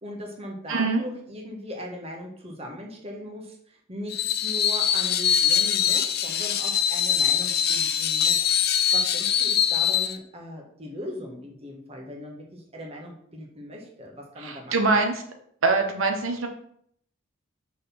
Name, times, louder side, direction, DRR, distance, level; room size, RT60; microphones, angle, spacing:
voice 1, 0.0-8.4 8.9-15.0, equal, 30° right, 0 dB, 1.5 m, -39 dB
voice 2, 0.7-1.0 14.4-15.1 15.6-16.5, right 3 dB, 90° right, 4 dB, 1.0 m, -23 dB
Screech, 4.1-10.1, left 8 dB, 55° left, 0.6 m, -23 dB
6.2 x 4.2 x 5.9 m, 0.66 s
head